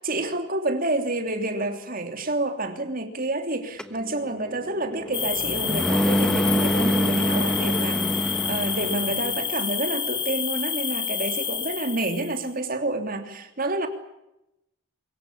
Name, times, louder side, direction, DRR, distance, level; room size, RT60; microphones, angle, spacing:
voice 1, 0.0-13.9, right 2 dB, 40° right, 6 dB, 3.2 m, -29 dB
sound 1, 3.8-9.4, equal, 5° left, 1.2 m, -26 dB
sound 2, 5.1-12.4, left 8 dB, 25° left, 2.0 m, -29 dB
24.0 x 22.5 x 8.6 m, 0.88 s
head